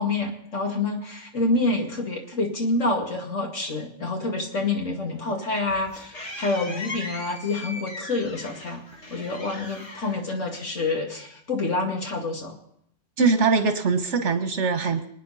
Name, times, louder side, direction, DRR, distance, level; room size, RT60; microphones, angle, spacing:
voice 1, 0.0-8.8 9.1-12.6, left 2 dB, 85° left, 1 dB, 2.7 m, -27 dB
sound 1, 5.2-11.0, left 2 dB, 65° left, 2.4 m, -39 dB
voice 2, 13.2-15.1, right 4 dB, 70° right, 7 dB, 1.7 m, -22 dB
26.0 x 9.4 x 4.2 m, 0.72 s
omnidirectional pair, 1.2 m